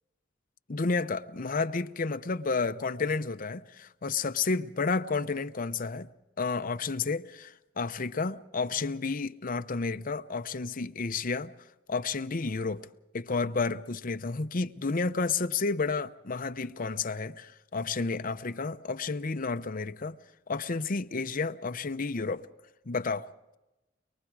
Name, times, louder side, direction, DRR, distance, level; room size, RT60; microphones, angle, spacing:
voice 1, 0.7-6.1 6.4-11.5 11.9-12.9 13.1-20.2 20.5-22.5 22.9-23.3, left 4 dB, 45° left, 0.7 m, -31 dB
23.5 x 23.0 x 4.7 m
head